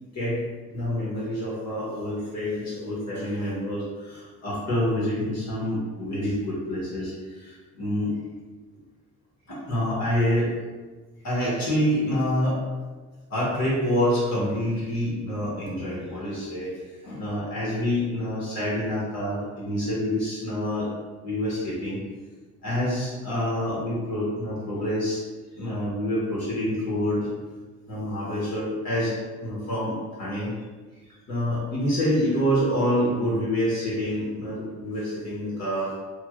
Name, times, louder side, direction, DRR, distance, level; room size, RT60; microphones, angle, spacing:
voice 1, 0.7-8.1 9.5-10.5 11.2-12.6 13.3-16.7 17.0-20.9 21.2-22.0 22.6-25.2 25.6-27.3 27.9-30.5 31.3-35.9, equal, 65° left, -6 dB, 1.2 m, -27 dB
3.1 x 2.5 x 2.5 m, 1.3 s
cardioid pair, 90°, 30 cm